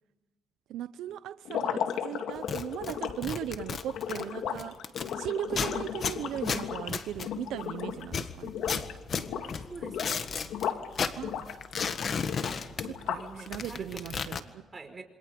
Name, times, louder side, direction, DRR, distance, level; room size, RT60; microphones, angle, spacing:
voice 1, 0.7-4.7 5.2-8.8 11.2-11.4 12.8-13.2 13.5-14.4, right 11 dB, 85° right, 12 dB, 0.7 m, -37 dB
sound 1, 1.4-8.1 8.4-8.9 9.2-10.9 11.2-13.4, left 8 dB, 80° left, 2.0 m, -35 dB
sound 2, 2.4-5.1 5.5-7.7 8.0-10.7 10.9-13.2 13.4-14.4, left 6 dB, 50° left, 1.6 m, -34 dB
voice 2, 9.4-11.6 12.4-15.0, right 3 dB, 25° right, 5 dB, 5.0 m, -48 dB
28.0 x 26.0 x 5.2 m, 1.2 s
cardioid pair, 90°, 0 cm